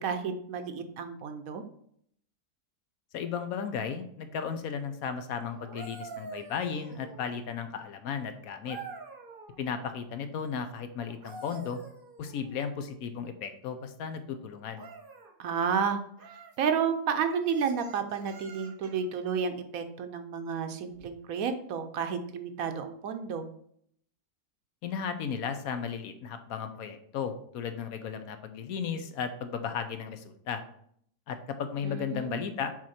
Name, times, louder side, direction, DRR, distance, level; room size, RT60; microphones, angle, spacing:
voice 1, 0.0-1.6 15.4-16.0 16.6-23.5 31.8-32.4, right 6 dB, 70° right, 8 dB, 1.1 m, -31 dB
voice 2, 3.1-8.8 9.6-11.8 12.2-14.8 24.8-30.6 31.3-32.7, left 7 dB, 70° left, 8 dB, 1.1 m, -35 dB
sound 1, 5.5-7.5 8.6-9.6 11.0-12.6 14.7-15.3 16.2-16.6 17.3-19.1 20.9-21.1, right 4 dB, 40° right, 1.0 m, -46 dB
6.3 x 4.5 x 4.2 m, 0.67 s
omnidirectional pair, 1.6 m